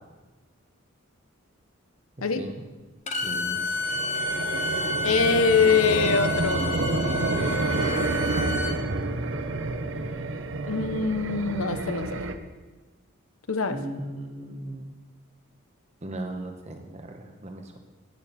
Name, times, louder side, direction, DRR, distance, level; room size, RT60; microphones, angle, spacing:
Bowed string instrument, 3.1-8.8, left 2 dB, 35° left, 0.9 m, -30 dB
voice 1, 3.2-3.6 13.7-14.9 16.0-17.8, right 1 dB, 30° right, 4 dB, 1.3 m, -37 dB
sound 1, 3.5-12.4, right 2 dB, 60° right, 0.8 m, -29 dB
voice 2, 5.0-6.6 10.7-12.2 13.5-13.8, left 5 dB, 80° left, 10 dB, 0.9 m, -23 dB
14.0 x 10.0 x 4.3 m, 1.2 s
head